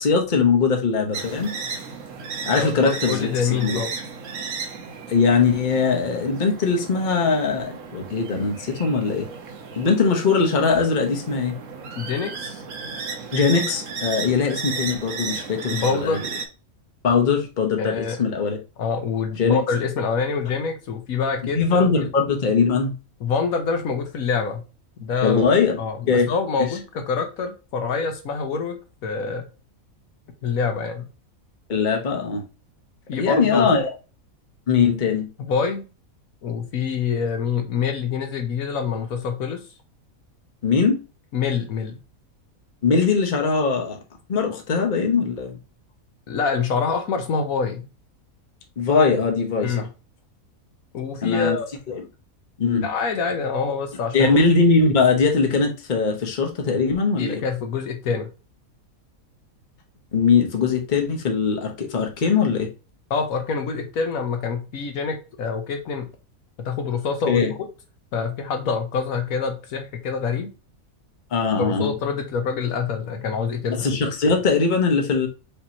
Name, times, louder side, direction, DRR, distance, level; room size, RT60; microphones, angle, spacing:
voice 1, 0.0-1.5 2.5-3.8 5.1-9.3 9.8-11.5 13.3-16.2 17.0-18.6 19.4-19.6 21.5-22.9 25.2-25.8 26.1-26.3 31.7-32.4 33.1-33.9 34.7-35.3 40.6-41.0 42.8-44.0 44.3-45.6 48.8-49.9 51.2-51.6 51.9-52.1 52.6-52.9 54.1-57.4 60.1-62.7 67.3-67.5 71.3-71.9 73.7-75.3, left 5 dB, 35° left, 1.0 m, -21 dB
sound 1, 1.1-16.5, right 5 dB, 65° right, 1.2 m, -34 dB
voice 2, 2.6-3.9 12.0-12.6 15.7-16.2 17.8-18.2 18.8-21.9 23.2-24.6 25.0-25.4 25.8-29.5 30.4-31.1 33.1-33.7 35.4-35.9 36.4-39.6 41.3-42.0 46.3-47.9 49.6-49.9 50.9-51.7 52.8-54.4 57.2-58.3 63.1-66.1 66.6-67.7 68.1-70.5 71.6-73.9, left 5 dB, 75° left, 1.2 m, -26 dB
5.2 x 2.9 x 2.9 m
omnidirectional pair, 1.5 m